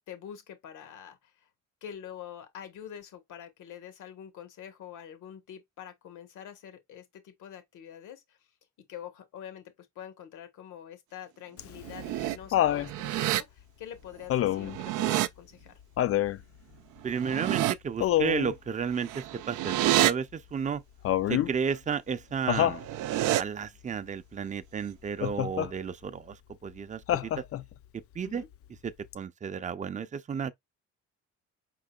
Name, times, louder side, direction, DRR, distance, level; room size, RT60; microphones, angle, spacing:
voice 1, 0.1-1.5 1.8-8.4 8.9-15.7 28.2-28.5, left 9 dB, 80° left, 1.3 m, -46 dB
Laughter, 11.6-12.9 14.3-14.8 16.0-16.4 18.0-18.5 21.0-21.5 22.5-22.8 25.2-25.7 27.1-27.7 29.1-29.2, left 12 dB, 50° left, 0.4 m, -27 dB
sound 1, 11.8-12.4 12.8-13.4 14.5-15.3 17.1-17.7 19.0-20.1 22.6-23.4, right 14 dB, 90° right, 0.5 m, -28 dB
voice 2, 17.0-20.8 21.3-22.8 23.3-26.4 26.6-27.4 28.1-28.4 28.8-30.5, right 6 dB, 25° right, 0.5 m, -32 dB
4.9 x 3.8 x 2.3 m
cardioid pair, 90°, 30 cm